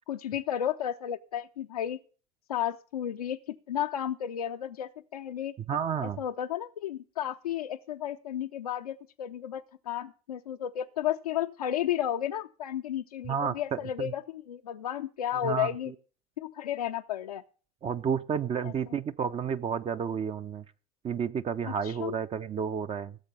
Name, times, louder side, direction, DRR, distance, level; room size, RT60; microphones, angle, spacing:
voice 1, 0.1-2.0 2.5-5.5 6.0-15.9 16.4-17.4 18.6-18.7 21.6-22.1, left 10 dB, 80° left, 4 dB, 0.5 m, -33 dB
voice 2, 5.6-6.2 13.2-14.1 15.4-15.7 17.8-20.6 21.0-23.2, right 7 dB, 30° right, 11 dB, 0.7 m, -31 dB
16.5 x 7.3 x 5.4 m, 0.39 s
figure-of-eight pair, 65°, 19 cm